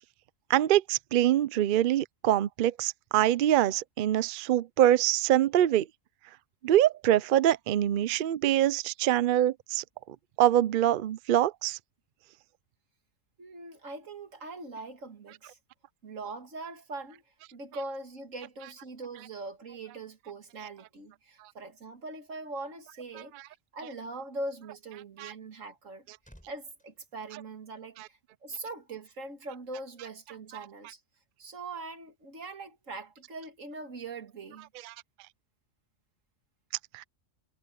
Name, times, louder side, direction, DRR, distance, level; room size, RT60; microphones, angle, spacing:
voice 1, 0.5-5.9 6.6-9.8 10.4-11.8 25.2-25.3 28.0-28.1 34.8-34.9 36.9-37.0, right 12 dB, 60° right, 0.6 m, -24 dB
voice 2, 13.4-15.6 16.0-17.2 17.5-26.1 26.4-31.0 31.4-34.7, right 2 dB, 90° right, 2.4 m, -42 dB
sound 1, 25.7-28.2 28.5-28.7, equal, 5° left, 6.1 m, -61 dB
omnidirectional pair, 1.3 m